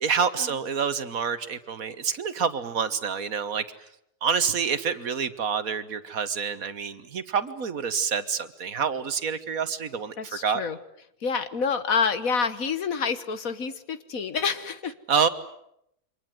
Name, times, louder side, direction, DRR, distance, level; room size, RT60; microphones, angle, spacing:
voice 1, 0.0-3.6 4.2-10.6 15.1-15.3, right 6 dB, 60° right, 12 dB, 1.7 m, -27 dB
voice 2, 10.2-10.8 11.2-14.9, left 5 dB, 60° left, 12 dB, 1.8 m, -28 dB
28.5 x 25.0 x 7.8 m, 0.78 s
omnidirectional pair, 1.7 m